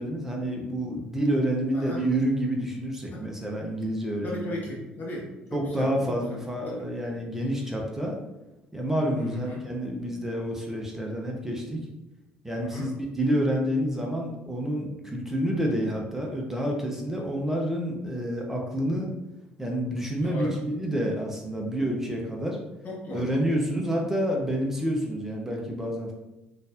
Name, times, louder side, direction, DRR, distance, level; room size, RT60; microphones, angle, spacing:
voice 1, 0.0-4.5 5.5-8.2 8.7-11.8 12.4-19.1 19.6-22.6 23.1-26.1, equal, 5° right, -1 dB, 0.9 m, -28 dB
voice 2, 4.2-5.3 5.8-5.9 6.3-6.4 9.1-9.6 12.6-12.9 20.2-20.5 22.8-23.3, left 1 dB, 35° left, -4 dB, 1.3 m, -36 dB
4.2 x 3.9 x 2.5 m, 1.0 s
figure-of-eight pair, 50°, 5 cm